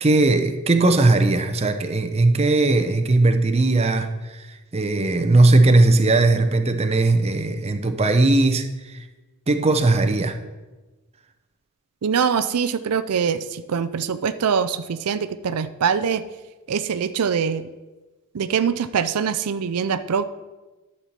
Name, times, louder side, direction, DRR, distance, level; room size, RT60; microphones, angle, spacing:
voice 1, 0.0-9.1 9.5-10.4, right 2 dB, 30° right, 7 dB, 0.7 m, -18 dB
voice 2, 12.0-16.2 16.7-17.7 18.3-20.3, right 6 dB, 90° right, 12 dB, 0.5 m, -23 dB
11.5 x 4.3 x 7.4 m, 1.2 s
head